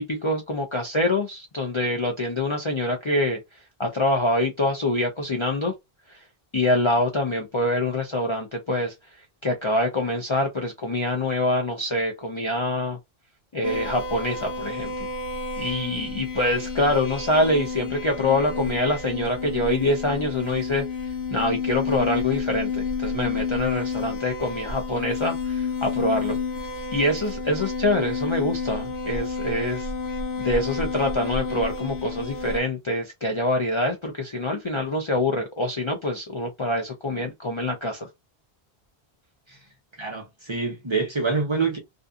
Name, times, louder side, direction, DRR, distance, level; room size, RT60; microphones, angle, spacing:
voice 1, 0.0-3.4 3.8-5.7 6.1-6.2 6.5-8.9 9.4-13.0 13.5-14.9 15.6-20.8 21.3-26.4 26.9-29.9 30.4-38.1, left 1 dB, 40° left, 0.5 m, -25 dB
sound 1, 13.6-32.6, left 4 dB, 85° left, 1.1 m, -30 dB
voice 2, 40.0-41.8, right 4 dB, 30° right, 0.7 m, -26 dB
2.5 x 2.3 x 2.5 m
omnidirectional pair, 1.0 m